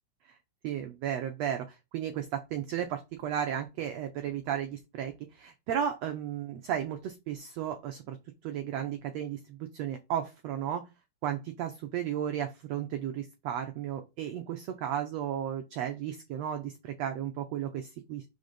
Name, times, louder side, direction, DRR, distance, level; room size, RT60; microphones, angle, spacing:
voice 1, 0.6-8.2 8.4-10.9 11.2-18.2, right 9 dB, 75° right, 5 dB, 1.5 m, -34 dB
5.9 x 4.0 x 5.1 m, 0.25 s
omnidirectional pair, 3.9 m